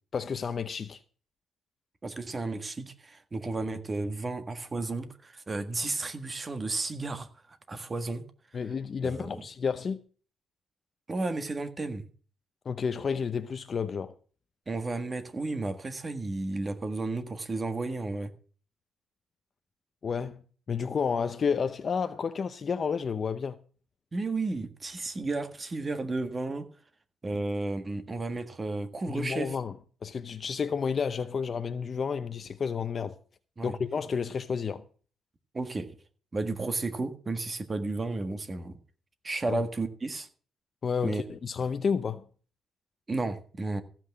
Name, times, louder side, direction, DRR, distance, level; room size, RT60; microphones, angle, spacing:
voice 1, 0.1-1.0 8.5-10.0 12.6-14.1 20.0-20.4 20.7-23.6 29.1-29.8 30.0-33.2 33.6-34.8 39.5-39.6 40.8-42.2, left 6 dB, 45° left, 0.7 m, -31 dB
voice 2, 2.0-7.3 7.7-8.2 9.0-9.4 11.1-12.1 14.7-18.3 24.1-26.7 27.2-29.6 33.6-33.7 35.5-35.9 36.3-38.8 39.2-40.3 41.0-41.2 43.1-43.8, right 3 dB, 30° right, 1.6 m, -33 dB
15.0 x 6.0 x 7.6 m
cardioid pair, 90°, 0 cm